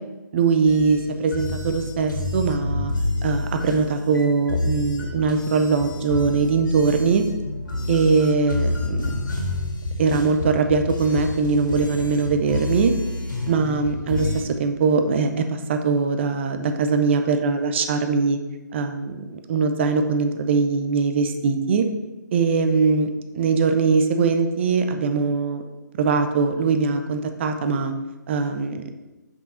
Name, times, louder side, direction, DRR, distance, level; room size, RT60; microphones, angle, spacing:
voice 1, 0.3-2.9 3.2-7.3 7.9-9.1 10.0-12.9 13.5-18.4 18.7-21.8 22.3-25.6 26.0-27.9 28.3-28.8, right 4 dB, 35° right, 7 dB, 0.6 m, -21 dB
sound 1, 0.7-14.4, left 2 dB, 85° left, 1.7 m, -28 dB
6.1 x 3.8 x 4.2 m, 1.1 s
hypercardioid pair, 150°, 10 cm